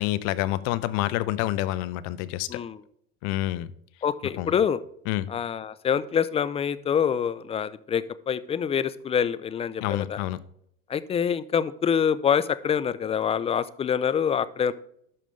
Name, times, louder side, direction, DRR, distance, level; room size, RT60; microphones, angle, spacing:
voice 1, 0.0-2.6 3.2-3.7 4.4-4.6 5.1-5.3 9.8-10.4, left 15 dB, 60° left, 0.7 m, -28 dB
voice 2, 4.0-4.8 5.3-10.2 10.9-14.7, left 7 dB, 20° left, 0.4 m, -26 dB
12.5 x 5.2 x 3.3 m
supercardioid pair, 105°, 31 cm